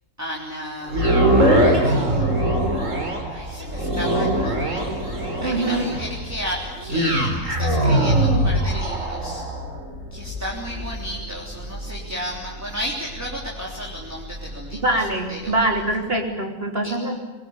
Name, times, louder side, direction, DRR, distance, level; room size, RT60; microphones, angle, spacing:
voice 1, 0.2-2.3 3.3-4.8 5.4-9.4 10.1-15.6 16.8-16.9, equal, 10° right, -3 dB, 3.4 m, -33 dB
sound 1, 0.9-15.1 15.6-15.7, right 1 dB, 65° right, 4.5 m, -23 dB
voice 2, 5.4-5.9 14.8-17.2, right 2 dB, 45° right, 2 dB, 3.8 m, -23 dB
23.0 x 23.0 x 9.7 m, 1.1 s
omnidirectional pair, 1.4 m